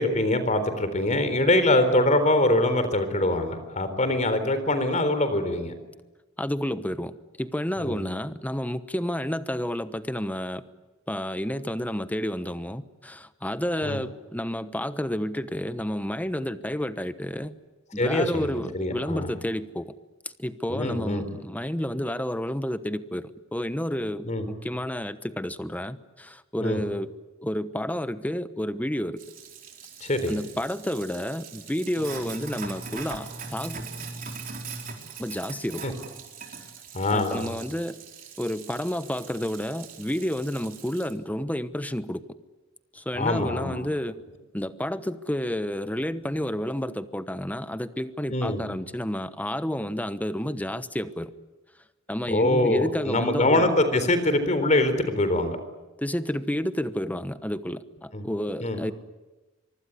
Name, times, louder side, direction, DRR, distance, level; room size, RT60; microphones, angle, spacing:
voice 1, 0.0-5.7 7.8-8.0 13.8-14.0 18.0-19.3 20.7-21.2 24.2-24.5 26.6-26.8 30.0-30.3 35.8-35.9 36.9-37.5 43.1-43.8 48.3-48.6 52.3-55.6 58.1-58.2 58.6-58.8, left 1 dB, 35° left, 10 dB, 3.9 m, -23 dB
voice 2, 6.4-10.6 11.1-17.5 17.9-19.9 20.4-27.1 27.4-29.2 30.3-33.9 35.2-35.8 37.1-38.0 38.4-42.2 42.9-44.2 44.5-51.3 52.1-53.7 56.0-58.9, equal, 10° left, 12 dB, 1.1 m, -30 dB
Sink (filling or washing), 29.2-41.1, right 5 dB, 45° right, 4.5 m, -41 dB
24.5 x 24.5 x 9.7 m, 1.2 s
head